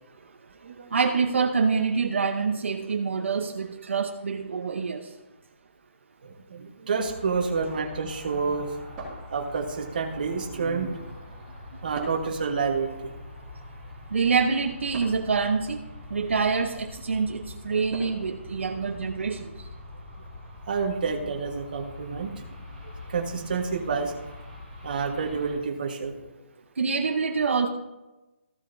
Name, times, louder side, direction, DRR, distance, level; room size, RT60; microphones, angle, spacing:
voice 1, 0.9-5.1 14.1-15.8 16.1-19.5 26.8-27.7, right 5 dB, 70° right, 4 dB, 0.9 m, -26 dB
voice 2, 6.2-8.7 9.3-11.2 11.8-13.1 20.7-22.5 22.8-24.1 24.8-26.3, right 5 dB, 40° right, 2 dB, 1.4 m, -29 dB
sound 1, 7.0-25.5, left 2 dB, 10° left, 3.8 m, -44 dB
sound 2, 9.0-9.9 11.9-12.4 14.9-15.3 17.9-18.4, right 2 dB, 10° right, 2.3 m, -40 dB
15.0 x 7.5 x 2.7 m, 1.1 s
hypercardioid pair, 175°, 7 cm